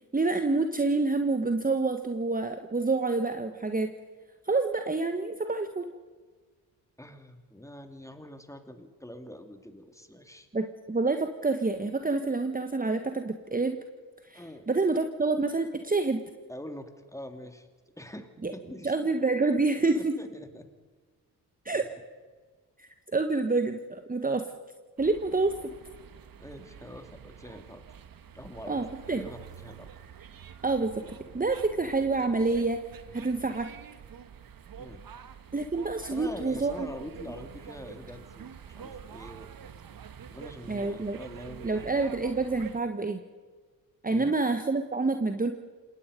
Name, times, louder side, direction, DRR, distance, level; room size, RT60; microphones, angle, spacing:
voice 1, 0.1-3.9 4.4-5.9 10.5-13.8 14.3-16.2 18.4-18.5 18.8-20.1 21.6-21.8 22.8-24.4 25.0-25.7 28.7-29.3 30.6-32.8 33.1-33.7 35.5-36.9 40.7-41.2 41.6-43.2 44.0-45.5, right 3 dB, 15° right, 7 dB, 1.5 m, -27 dB
voice 2, 7.0-10.5 14.3-14.7 16.5-17.7 18.0-19.1 19.9-20.7 26.4-27.8 28.3-29.9 34.8-35.0 36.1-39.5 40.3-42.1 44.1-44.3, left 1 dB, 5° left, 6 dB, 3.1 m, -44 dB
sound 1, 25.0-42.8, right 7 dB, 45° right, 1.7 m, -47 dB
27.5 x 20.5 x 5.3 m, 1.4 s
hypercardioid pair, 40°, 48 cm